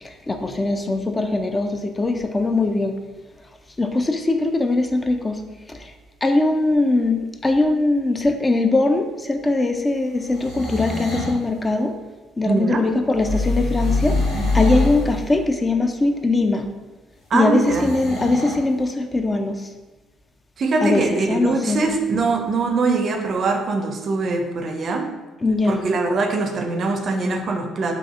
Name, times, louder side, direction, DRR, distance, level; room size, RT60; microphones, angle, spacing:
voice 1, 0.0-2.9 3.8-5.4 5.7-5.9 6.2-12.0 12.4-16.7 17.3-19.7 20.8-21.8 25.4-25.8, left 2 dB, 25° left, 6 dB, 0.3 m, -21 dB
sound 1, 10.2-11.4 13.8-15.0 17.5-18.6, equal, 80° left, 1.1 m, -31 dB
voice 2, 12.5-12.8 17.3-17.9 20.6-25.1 25.7-27.9, right 3 dB, 55° right, 4 dB, 0.4 m, -22 dB
sound 2, 13.1-15.5, left 3 dB, 60° left, 0.7 m, -22 dB
3.9 x 2.4 x 2.4 m, 1.2 s
hypercardioid pair, 60°, 0 cm